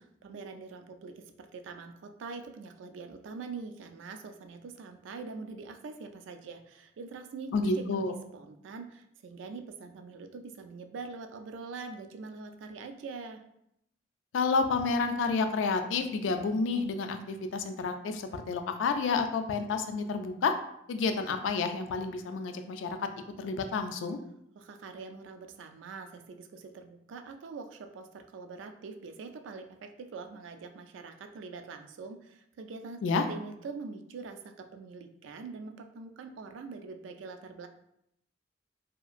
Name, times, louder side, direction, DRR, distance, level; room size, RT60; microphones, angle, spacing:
voice 1, 0.2-13.4 24.6-33.0 33.3-37.7, right 4 dB, 85° right, 6 dB, 0.3 m, -44 dB
voice 2, 7.5-8.1 14.3-20.5 20.9-23.0 23.4-24.2 33.0-33.2, left 4 dB, 90° left, 7 dB, 0.3 m, -30 dB
2.8 x 2.4 x 2.4 m, 0.77 s
head